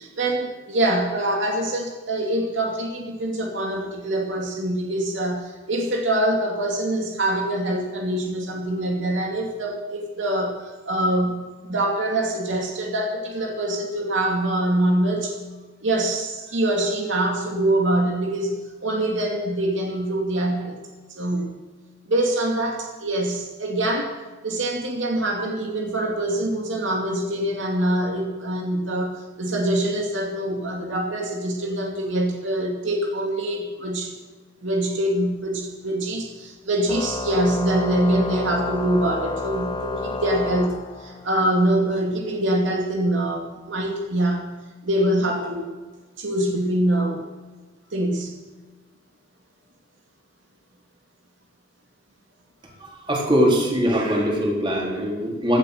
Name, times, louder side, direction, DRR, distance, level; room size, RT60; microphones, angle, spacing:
voice 1, 0.0-15.4 15.8-20.8 21.2-21.6 22.1-24.1 24.4-34.1 34.6-44.5 44.8-45.7 46.2-47.2 47.9-48.4, right 1 dB, 70° right, 1 dB, 2.5 m, -24 dB
Organ, 36.9-41.4, left 3 dB, 25° left, 1.1 m, -30 dB
voice 2, 52.8-55.6, equal, 25° right, -1 dB, 3.9 m, -22 dB
17.5 x 12.5 x 6.7 m, 1.2 s
head